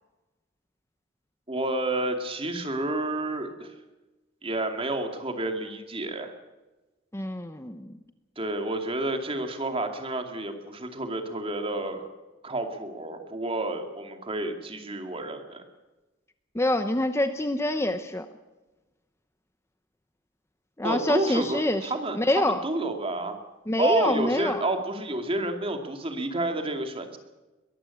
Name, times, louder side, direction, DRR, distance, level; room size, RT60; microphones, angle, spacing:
voice 1, 1.5-3.7 4.4-6.3 8.4-12.1 12.4-15.6 20.8-23.4 23.8-27.2, right 2 dB, 30° right, 5 dB, 2.4 m, -30 dB
voice 2, 7.1-7.9 16.5-18.3 20.8-22.6 23.7-24.6, left 1 dB, 15° left, 9 dB, 0.8 m, -26 dB
22.0 x 14.5 x 8.5 m, 1.1 s
head